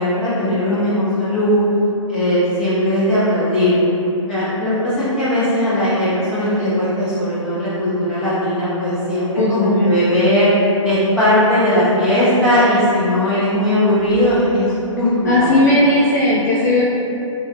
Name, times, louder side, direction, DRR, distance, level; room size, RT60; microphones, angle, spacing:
voice 1, 0.0-1.6 2.1-3.8 4.3-10.5 10.8-15.6, left 1 dB, 5° right, -13 dB, 0.9 m, -18 dB
voice 2, 9.4-10.0 15.2-16.8, left 1 dB, 30° left, -7 dB, 0.4 m, -16 dB
3.5 x 3.1 x 2.9 m, 3.0 s
figure-of-eight pair, 135°, 17 cm